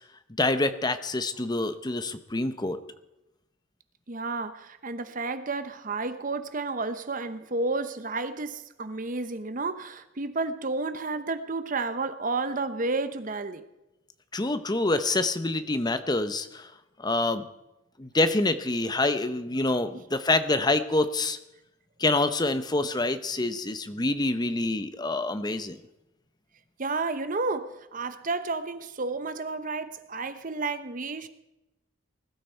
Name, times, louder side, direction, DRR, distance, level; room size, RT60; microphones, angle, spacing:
voice 1, 0.4-2.8 14.3-16.7 17.0-17.5 18.0-21.4 22.0-25.8, left 2 dB, 20° left, 11 dB, 0.8 m, -26 dB
voice 2, 4.1-13.6 19.9-20.0 26.8-31.3, right 3 dB, 40° right, 11 dB, 0.8 m, -31 dB
20.5 x 12.5 x 4.5 m, 0.94 s
head